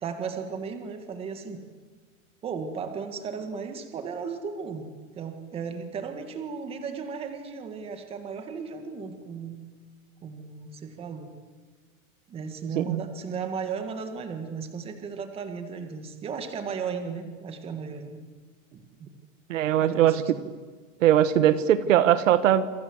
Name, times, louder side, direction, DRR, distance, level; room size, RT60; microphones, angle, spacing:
voice 1, 0.0-1.6 2.4-4.9 5.2-9.6 10.2-11.3 12.3-18.2 18.7-19.1 19.8-20.4, right 5 dB, 15° right, 7 dB, 1.8 m, -35 dB
voice 2, 19.5-20.2 21.0-22.7, right 11 dB, 60° right, 13 dB, 1.5 m, -20 dB
28.0 x 26.0 x 8.0 m, 1.5 s
supercardioid pair, 175°, 43 cm